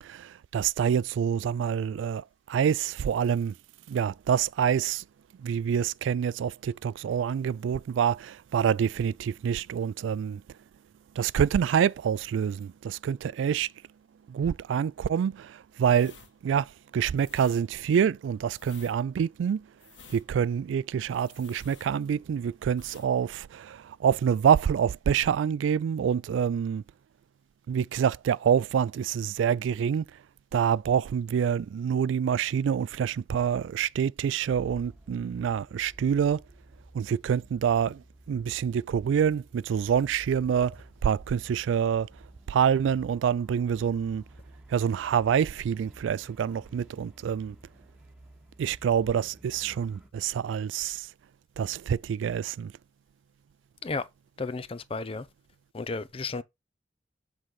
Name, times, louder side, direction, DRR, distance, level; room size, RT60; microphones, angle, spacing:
voice 1, 0.0-3.5 3.9-5.0 5.4-10.6 11.1-13.7 14.3-16.2 16.4-19.7 20.1-26.8 27.7-30.2 30.5-36.4 36.9-42.2 42.5-44.2 44.7-47.6 48.6-51.1 51.6-52.7, right 8 dB, 90° right, 0.3 m, -27 dB
sound 1, 15.8-22.4 22.7-23.1 23.4-23.6, left 5 dB, 75° left, 1.9 m, -53 dB
sound 2, 34.5-50.1, right 1 dB, 5° right, 1.3 m, -52 dB
voice 2, 54.4-55.3 55.7-56.4, left 3 dB, 30° left, 0.5 m, -33 dB
7.5 x 3.8 x 4.8 m
head